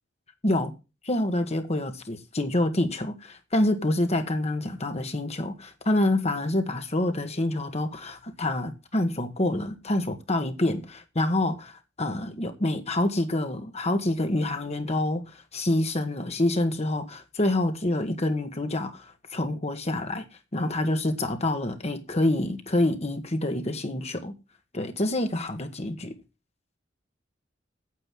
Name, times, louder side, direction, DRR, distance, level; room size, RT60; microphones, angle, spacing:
voice 1, 0.4-0.7 1.0-20.2 20.5-24.3 24.7-26.1, left 1 dB, 35° left, 1.5 m, -27 dB
9.1 x 7.9 x 7.6 m
head